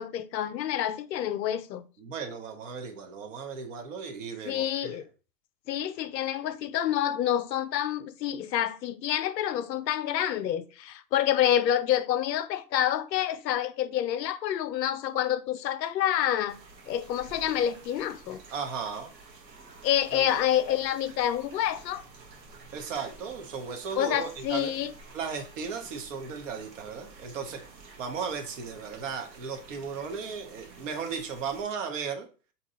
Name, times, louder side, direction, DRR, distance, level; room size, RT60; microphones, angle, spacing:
voice 1, 0.0-1.8 4.5-5.1 5.7-16.6 16.9-18.4 19.8-22.0 24.0-24.9, left 11 dB, 85° left, 0.6 m, -28 dB
voice 2, 2.0-5.0 18.5-19.1 20.1-20.4 22.7-24.7 25.1-27.6 28.0-32.3, right 6 dB, 50° right, 0.9 m, -36 dB
sound 1, 16.5-31.6, right 3 dB, 85° right, 1.2 m, -51 dB
2.7 x 2.3 x 4.1 m
hypercardioid pair, 150°, 49 cm